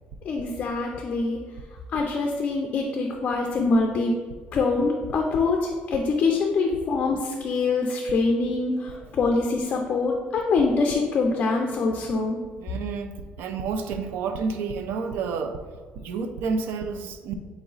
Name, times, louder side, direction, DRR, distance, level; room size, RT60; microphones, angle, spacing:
voice 1, 0.2-1.4 1.9-4.1 4.5-12.4, left 3 dB, 35° left, 2 dB, 0.4 m, -24 dB
voice 2, 12.6-15.6 16.0-17.4, right 5 dB, 80° right, 7 dB, 0.4 m, -30 dB
4.0 x 2.9 x 3.9 m, 1.5 s
cardioid pair, 160°, 3 cm